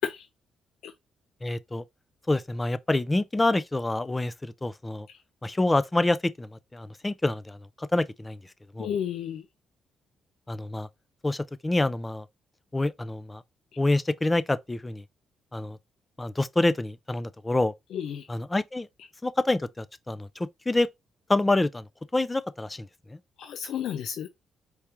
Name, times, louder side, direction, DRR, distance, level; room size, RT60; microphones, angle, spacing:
voice 1, 1.4-1.8 2.3-5.1 5.4-8.4 8.7-8.9 10.5-10.9 11.2-12.3 12.7-13.4 13.8-15.0 15.5-15.8 16.2-17.7 18.3-18.9 19.2-20.9 21.3-23.2, left 2 dB, 15° left, 0.4 m, -27 dB
voice 2, 8.8-9.4 17.9-18.2 23.4-24.3, left 9 dB, 75° left, 0.4 m, -32 dB
4.6 x 3.5 x 2.8 m
cardioid pair, 90°, 0 cm